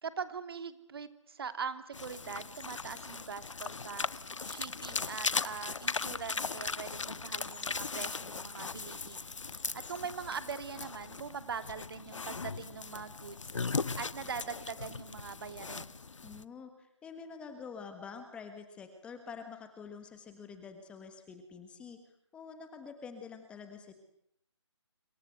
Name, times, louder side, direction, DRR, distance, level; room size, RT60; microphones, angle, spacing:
voice 1, 0.0-4.1 4.4-9.3 9.9-13.5 14.0-16.0, right 6 dB, 50° right, 11 dB, 2.8 m, -42 dB
sound 1, 1.9-16.4, left 4 dB, 85° left, 1.4 m, -38 dB
voice 2, 16.2-22.0 22.3-23.9, left 5 dB, 5° left, 7 dB, 1.5 m, -47 dB
27.0 x 27.0 x 7.9 m, 0.69 s
hypercardioid pair, 165°, 16 cm